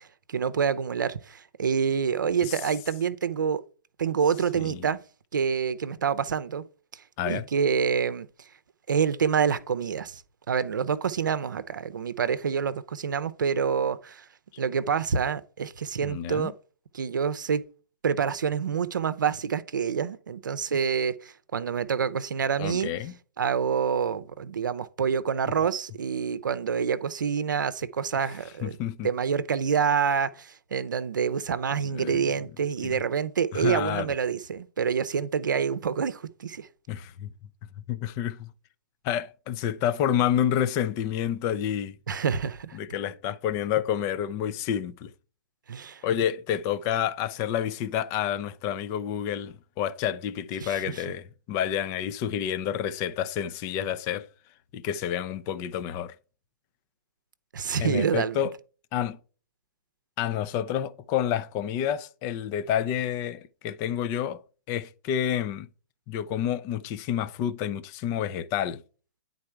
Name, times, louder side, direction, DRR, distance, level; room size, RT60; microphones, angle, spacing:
voice 1, 0.0-3.6 4.0-5.0 5.3-6.6 6.9-8.3 8.9-10.2 10.5-14.2 14.6-16.5 16.9-17.6 18.0-22.9 23.4-28.7 29.0-36.7 42.1-42.8 45.7-46.0 50.6-51.0 57.5-58.5, right 6 dB, 80° right, 0.6 m, -27 dB
voice 2, 16.0-16.5 22.6-23.1 28.6-29.1 31.9-32.2 32.8-33.0 33.5-34.1 36.9-37.3 37.9-38.5 39.0-42.0 42.7-45.1 46.0-54.3 54.7-56.1 57.8-58.5 58.9-59.2 60.2-64.4 64.7-65.7 66.1-68.8, left 10 dB, 30° left, 0.5 m, -29 dB
9.7 x 4.0 x 4.5 m
hypercardioid pair, 135°, 10 cm